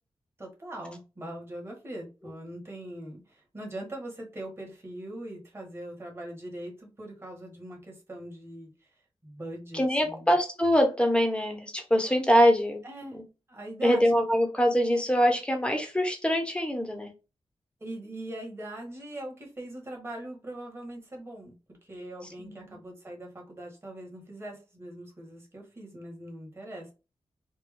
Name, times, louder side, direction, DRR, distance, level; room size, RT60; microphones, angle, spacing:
voice 1, 0.4-8.9 9.2-10.3 12.8-13.2 13.5-14.0 17.8-21.5 21.8-26.9, right 1 dB, 25° right, -1 dB, 1.6 m, -41 dB
voice 2, 9.7-12.8 13.8-17.1 22.4-22.7, equal, 10° left, 3 dB, 1.1 m, -24 dB
4.4 x 2.2 x 3.5 m, 0.30 s
wide cardioid pair, 100°, 10 cm